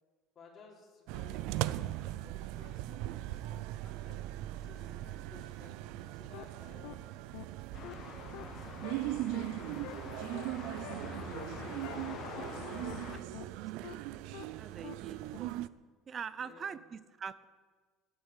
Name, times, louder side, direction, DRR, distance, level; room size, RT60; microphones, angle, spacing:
voice 1, 0.4-4.2 4.6-7.1 8.4-9.2 9.7-10.5 10.9-13.5 16.4-16.8, left 4 dB, 25° left, -4 dB, 3.7 m, -58 dB
sound 1, 1.1-15.7, right 15 dB, 70° right, 0.5 m, -39 dB
sound 2, 6.3-6.4 6.8-6.9 7.3-7.5 7.8-7.9 8.3-8.4 8.8-8.9 9.3-9.4 9.8-9.9 10.3-10.4 10.8-10.9 11.3-11.4 11.8-11.9 12.3-12.4 12.8-12.9 13.3-13.5 13.8-13.9 14.3-14.4 14.8-14.9 15.3-15.4, left 19 dB, 75° left, 0.7 m, -45 dB
sound 3, 7.7-13.2, left 7 dB, 45° left, 1.3 m, -46 dB
voice 2, 12.6-13.0 14.5-15.6 16.1-17.4, right 7 dB, 30° right, 16 dB, 0.6 m, -44 dB
14.0 x 9.6 x 8.3 m, 1.5 s
cardioid pair, 140°, 0 cm